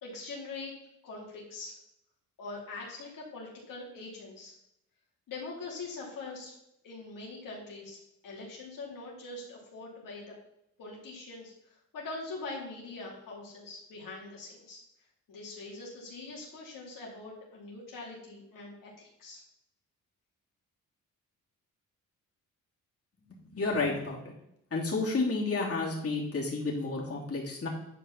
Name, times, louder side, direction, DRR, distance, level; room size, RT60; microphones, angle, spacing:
voice 1, 0.0-0.7 1.0-1.7 2.4-4.5 5.3-6.5 6.8-10.3 10.8-14.8 15.3-19.4, left 3 dB, 75° left, -3 dB, 2.9 m, -43 dB
voice 2, 23.5-24.2 24.7-27.7, left 3 dB, 45° left, -3 dB, 3.1 m, -31 dB
10.5 x 5.0 x 5.9 m, 0.80 s
cardioid pair, 65°, 33 cm